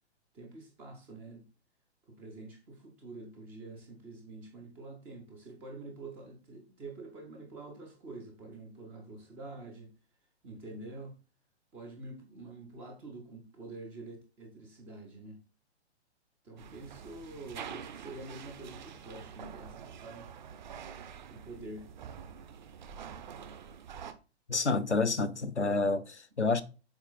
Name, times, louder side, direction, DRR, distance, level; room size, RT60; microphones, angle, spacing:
voice 1, 0.3-1.4 2.1-9.9 10.4-11.2 11.7-15.4 16.4-20.3 21.3-21.9, right 2 dB, 5° right, 0.4 m, -47 dB
sound 1, 16.6-24.1, right 7 dB, 45° right, 0.9 m, -46 dB
voice 2, 24.5-26.6, left 3 dB, 85° left, 0.8 m, -29 dB
7.2 x 4.3 x 3.9 m
figure-of-eight pair, 120°, 34 cm